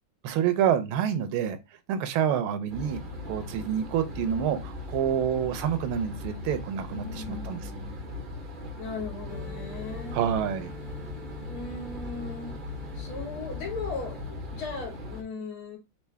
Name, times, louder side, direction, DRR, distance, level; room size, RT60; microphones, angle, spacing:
voice 1, 0.2-1.6 1.9-3.0 3.3-7.7 10.1-10.8, right 9 dB, 80° right, 1.5 m, -27 dB
sound 1, 2.7-15.2, left 2 dB, 60° right, 0.5 m, -39 dB
voice 2, 6.9-8.0 8.8-10.3 11.4-12.6 12.9-15.8, left 4 dB, 80° left, 2.2 m, -38 dB
sound 2, 9.3-14.3, left 3 dB, 30° left, 0.9 m, -46 dB
4.5 x 2.7 x 3.3 m
omnidirectional pair, 2.3 m